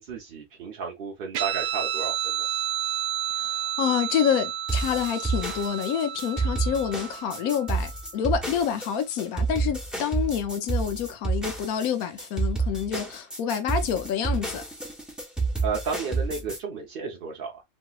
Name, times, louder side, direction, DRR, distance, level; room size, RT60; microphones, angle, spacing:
voice 1, 0.0-2.5 15.6-17.6, right 5 dB, 50° right, 0.7 m, -33 dB
Guitar, 1.3-8.3, right 10 dB, 90° right, 1.1 m, -31 dB
voice 2, 3.4-14.6, left 8 dB, 80° left, 1.1 m, -28 dB
sound 1, 4.7-16.6, right 4 dB, ahead, 0.7 m, -29 dB
3.1 x 2.9 x 2.2 m
omnidirectional pair, 1.5 m